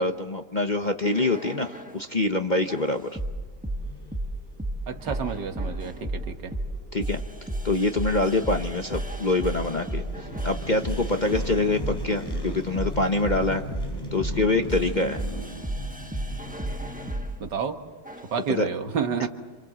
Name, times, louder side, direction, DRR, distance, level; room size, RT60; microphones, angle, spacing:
voice 1, 0.0-3.1 6.9-7.2 7.6-10.0 10.4-13.6 14.1-15.2 18.5-18.7 19.2-19.3, left 2 dB, 35° left, 5 dB, 0.9 m, -25 dB
sound 1, 1.0-2.0 2.7-17.4 18.0-18.4, right 1 dB, 5° right, 0.9 m, -33 dB
sound 2, 2.1-17.2, right 1 dB, 10° left, 6.3 m, -41 dB
voice 2, 4.9-6.5 17.4-17.8 18.3-19.3, right 6 dB, 75° right, 7 dB, 2.1 m, -29 dB
27.5 x 27.0 x 7.6 m, 1.4 s
omnidirectional pair, 1.9 m